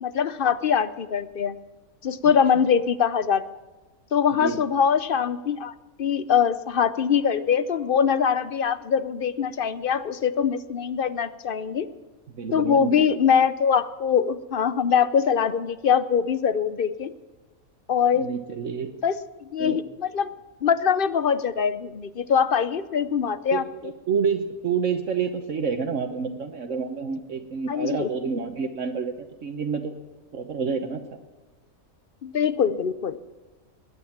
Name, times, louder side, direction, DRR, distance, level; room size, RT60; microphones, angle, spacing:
voice 1, 0.0-1.5 2.0-3.6 4.1-5.7 6.0-11.9 12.5-17.1 17.9-18.3 19.0-19.1 19.5-20.3 20.6-23.6 27.7-28.1 32.2-33.2, left 7 dB, 50° left, 15 dB, 0.8 m, -23 dB
voice 2, 4.3-4.6 12.3-13.2 18.1-18.9 19.6-19.8 23.5-29.9 30.3-31.0, right 6 dB, 65° right, 6 dB, 1.4 m, -28 dB
20.5 x 9.7 x 7.3 m, 1.2 s
omnidirectional pair, 1.4 m